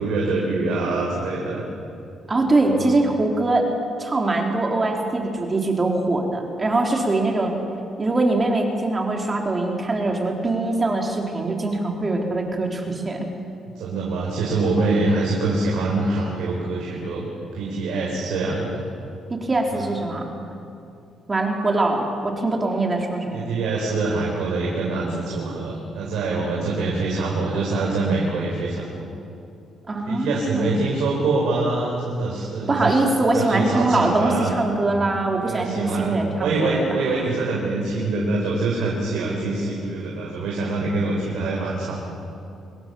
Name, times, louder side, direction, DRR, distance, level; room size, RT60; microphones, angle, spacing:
voice 1, 0.0-1.6 2.7-3.0 13.7-17.2 17.5-18.8 19.7-20.0 23.3-29.1 30.1-33.0 33.3-34.5 35.4-42.1, right 3 dB, 85° right, -2 dB, 4.8 m, -25 dB
voice 2, 2.3-3.7 4.0-7.6 8.0-13.3 19.3-20.3 21.3-23.5 29.9-30.8 32.7-36.8, right 2 dB, 30° right, 1 dB, 3.9 m, -22 dB
25.5 x 21.5 x 7.1 m, 2.6 s
cardioid pair, 90°, 0 cm